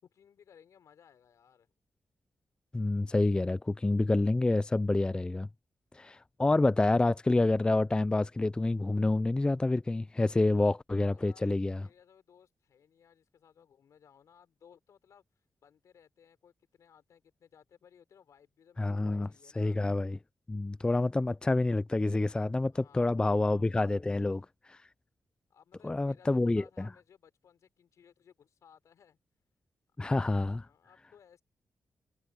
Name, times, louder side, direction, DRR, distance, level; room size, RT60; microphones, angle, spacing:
voice 1, 0.0-1.7 11.1-11.4 11.8-15.2 15.6-19.8 22.7-23.6 24.0-24.5 25.5-26.3 26.5-29.2 30.4-31.4, left 8 dB, 80° left, 5.0 m, -61 dB
voice 2, 2.7-5.5 5.9-11.8 18.8-19.3 19.6-20.2 20.5-24.4 25.8-26.9 30.0-30.7, left 2 dB, 15° left, 0.4 m, -28 dB
cardioid pair, 85°, 5 cm